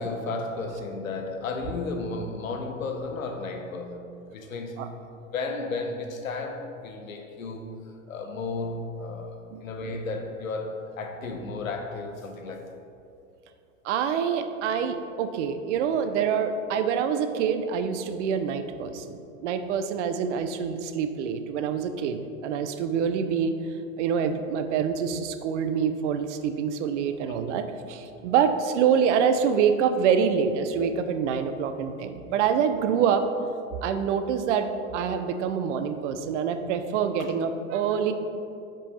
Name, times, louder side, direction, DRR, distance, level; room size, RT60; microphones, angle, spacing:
voice 1, 0.0-4.1 4.3-4.8 5.3-7.6 8.1-12.6 37.2-37.3, left 3 dB, 85° left, 4 dB, 0.8 m, -33 dB
voice 2, 13.8-23.6 24.0-33.3 33.8-34.7 34.9-38.1, right 7 dB, 65° right, 9 dB, 0.6 m, -26 dB
5.3 x 5.2 x 4.2 m, 2.6 s
hypercardioid pair, 90°, 39 cm